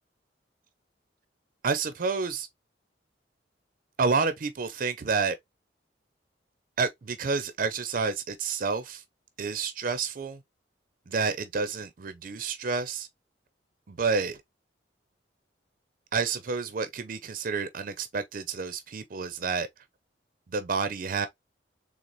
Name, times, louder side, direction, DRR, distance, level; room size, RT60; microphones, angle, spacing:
voice 1, 1.6-2.5 4.0-5.4 6.8-9.0 9.4-10.4 11.1-13.1 13.9-14.4 16.1-19.7 20.5-21.3, right 4 dB, 45° right, 0.4 m, -29 dB
3.9 x 3.3 x 3.0 m
head